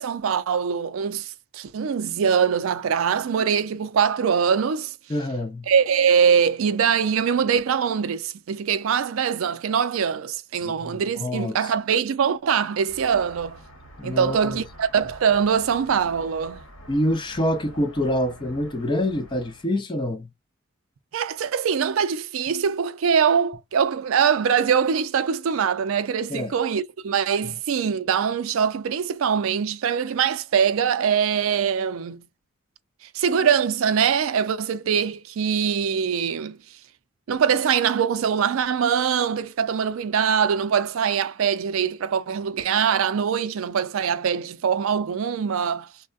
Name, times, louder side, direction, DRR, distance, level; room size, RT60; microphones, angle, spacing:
voice 1, 0.0-4.9 5.7-13.6 14.0-16.6 21.1-32.2 33.1-36.6 37.3-45.9, right 7 dB, 80° right, 0.4 m, -23 dB
voice 2, 5.1-5.7 10.6-11.7 14.0-14.6 16.9-20.3 26.3-26.5 27.4-27.5, left 1 dB, 20° left, 0.4 m, -26 dB
sound 1, 12.9-19.7, equal, 80° left, 1.0 m, -46 dB
3.4 x 2.1 x 2.3 m
head